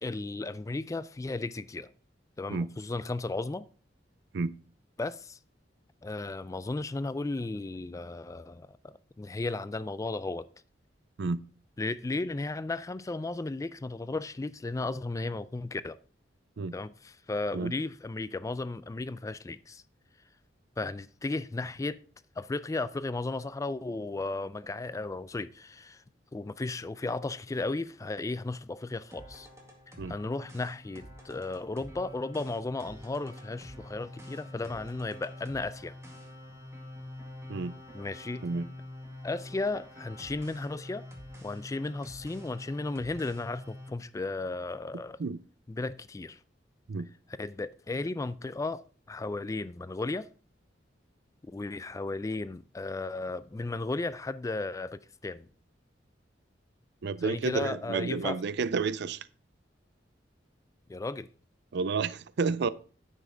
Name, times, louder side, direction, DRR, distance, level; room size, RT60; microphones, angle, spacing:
voice 1, 0.0-1.9 2.4-3.7 5.0-5.4 6.0-10.5 11.8-16.0 16.7-19.8 20.8-22.0 22.4-26.0 26.3-29.5 30.1-35.9 37.9-38.5 39.2-41.1 41.4-45.2 45.7-46.4 47.4-50.3 51.4-55.5 57.2-58.4 60.9-61.3, left 3 dB, 20° left, 0.3 m, -35 dB
sound 1, 29.1-43.9, left 1 dB, 15° right, 2.0 m, -46 dB
voice 2, 57.0-59.3 61.7-62.7, right 4 dB, 65° right, 0.5 m, -30 dB
9.8 x 7.3 x 3.8 m
head